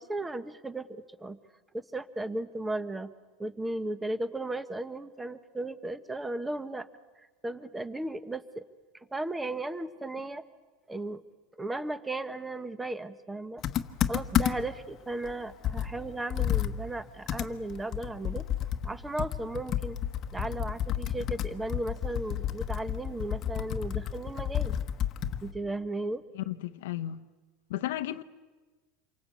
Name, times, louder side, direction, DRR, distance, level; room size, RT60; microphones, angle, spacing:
voice 1, 0.0-1.4 1.7-3.1 3.4-6.9 7.4-8.6 9.1-10.4 10.9-11.2 11.6-13.6 14.1-18.4 18.8-20.0 20.3-24.8 25.4-26.2, right 2 dB, 10° right, 1.0 m, -35 dB
Computer keyboard, 13.6-14.8 15.2-15.3 15.6-25.5, left 10 dB, 35° left, 1.2 m, -31 dB
voice 2, 26.3-27.2 27.7-28.2, left 14 dB, 90° left, 0.8 m, -34 dB
27.5 x 24.0 x 8.4 m
supercardioid pair, 150°, 0 cm